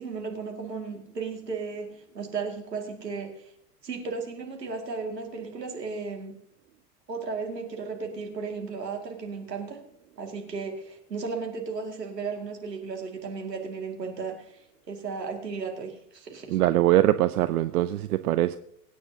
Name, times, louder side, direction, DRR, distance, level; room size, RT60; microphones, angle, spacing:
voice 1, 0.0-1.9 2.1-3.5 3.8-6.3 7.1-9.8 10.2-14.6 14.9-16.6, right 4 dB, 85° right, 2.4 m, -35 dB
voice 2, 16.5-18.6, right 14 dB, 65° right, 0.6 m, -22 dB
23.0 x 9.6 x 2.8 m
figure-of-eight pair, 80°, 48 cm